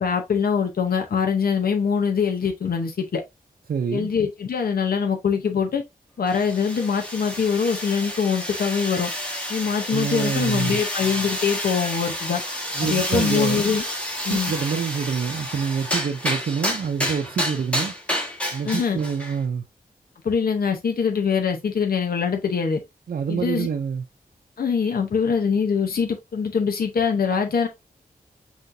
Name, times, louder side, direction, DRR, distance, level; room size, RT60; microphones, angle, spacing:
voice 1, 0.0-3.2 3.9-5.8 6.2-9.1 9.5-12.4 12.8-13.8 14.2-14.5 18.6-19.0 20.2-22.8 23.3-23.7 24.6-27.7, left 6 dB, 70° left, 0.8 m, -23 dB
voice 2, 3.7-4.1 9.9-10.8 12.7-13.6 14.3-17.9 18.5-19.7 23.1-24.0, right 6 dB, 70° right, 0.6 m, -26 dB
sound 1, 6.3-19.4, equal, 5° left, 1.3 m, -29 dB
5.8 x 3.1 x 2.6 m
wide cardioid pair, 125°, 16 cm